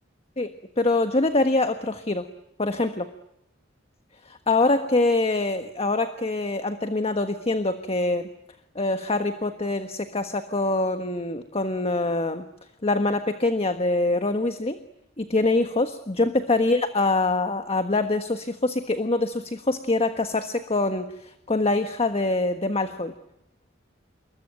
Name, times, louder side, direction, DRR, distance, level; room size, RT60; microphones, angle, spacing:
voice 1, 0.4-2.3 2.6-3.1 4.3-8.3 8.7-12.4 12.8-14.8 15.2-23.1, left 2 dB, 30° left, 8 dB, 1.5 m, -24 dB
28.0 x 23.0 x 9.2 m, 0.82 s
head